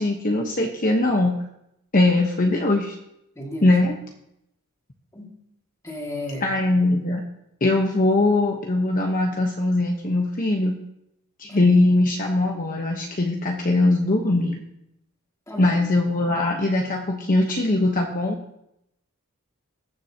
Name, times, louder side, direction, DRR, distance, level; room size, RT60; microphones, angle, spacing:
voice 1, 0.0-1.4 1.9-3.0 3.6-4.0 6.4-7.2 7.6-10.8 11.4-14.6 15.6-18.4, left 2 dB, 40° left, 1 dB, 1.0 m, -21 dB
voice 2, 3.4-3.7 5.1-5.3 5.8-6.4 11.5-11.6 15.5-15.8, left 1 dB, 15° left, -2 dB, 2.1 m, -33 dB
21.5 x 7.2 x 2.9 m, 0.82 s
head